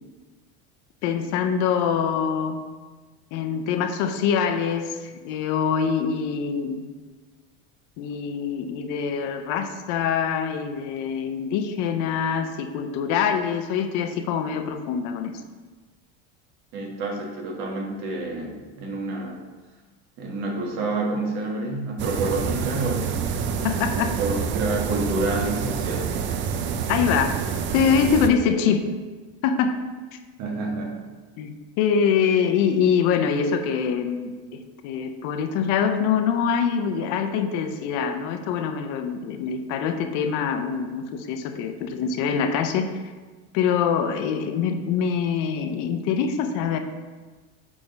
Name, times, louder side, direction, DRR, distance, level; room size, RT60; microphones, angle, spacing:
voice 1, 1.0-2.6 3.3-6.8 8.0-15.4 23.6-24.2 26.9-27.4 27.7-28.8 29.4-29.8 31.4-31.5 31.8-42.9 43.5-46.8, left 7 dB, 65° left, 7 dB, 0.7 m, -24 dB
voice 2, 16.7-19.4 20.2-23.2 23.9-26.1 30.4-31.0, right 2 dB, 55° right, 0 dB, 1.5 m, -28 dB
sound 1, 22.0-28.3, right 7 dB, 35° right, 0.4 m, -27 dB
6.2 x 3.7 x 5.2 m, 1.3 s
cardioid pair, 145°, 32 cm